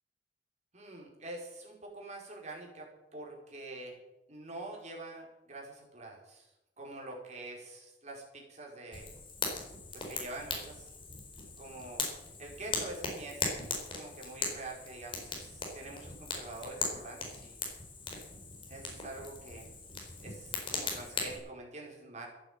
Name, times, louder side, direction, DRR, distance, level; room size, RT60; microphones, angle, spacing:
voice 1, 0.7-4.0 4.3-6.5 6.8-9.1 9.9-10.9 11.6-12.0 12.4-13.5 13.9-17.6 18.7-19.7 20.2-22.3, right 2 dB, 40° right, -1 dB, 5.0 m, -45 dB
Fire, 8.9-21.4, left 4 dB, 30° left, 4.4 m, -39 dB
15.0 x 9.8 x 8.9 m, 0.93 s
head